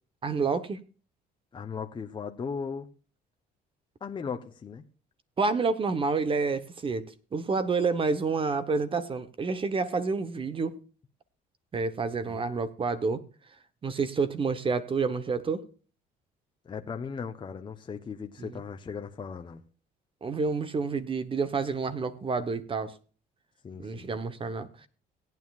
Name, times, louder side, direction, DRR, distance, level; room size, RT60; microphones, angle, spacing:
voice 1, 0.2-0.8 5.4-10.8 11.7-13.2 13.8-15.6 18.4-18.5 20.2-22.9 23.8-24.9, right 4 dB, 30° right, 1.1 m, -29 dB
voice 2, 1.5-2.9 4.0-4.8 12.3-12.5 16.6-19.6 23.6-24.1, left 6 dB, 30° left, 0.9 m, -37 dB
18.0 x 9.3 x 2.4 m
cardioid pair, 110°, 17 cm